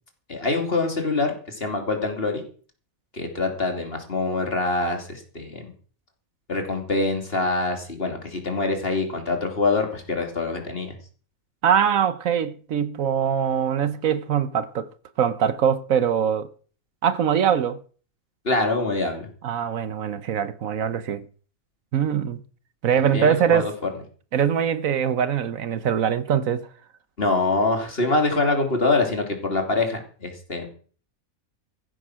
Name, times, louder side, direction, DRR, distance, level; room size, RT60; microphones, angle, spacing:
voice 1, 0.3-2.4 3.1-5.6 6.5-10.9 18.4-19.3 23.0-23.7 27.2-30.7, left 3 dB, 40° left, 3.1 m, -25 dB
voice 2, 11.6-14.9 15.2-16.5 17.0-17.8 19.4-21.2 21.9-22.4 22.8-23.7 24.3-26.7, right 8 dB, 70° right, 1.2 m, -22 dB
15.0 x 9.2 x 6.3 m
omnidirectional pair, 1.5 m